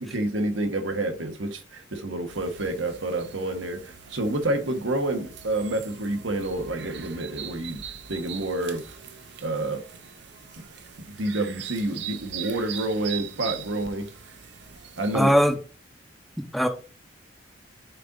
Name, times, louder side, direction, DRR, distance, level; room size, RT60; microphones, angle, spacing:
voice 1, 0.0-7.8 8.1-9.0 9.4-9.8 11.1-14.1 15.0-15.4, right 2 dB, 85° right, 1.2 m, -28 dB
sound 1, 2.3-15.6, right 9 dB, 60° right, 0.6 m, -41 dB
voice 2, 15.1-15.6 16.4-16.7, equal, ahead, 0.6 m, -20 dB
6.6 x 3.9 x 3.8 m
head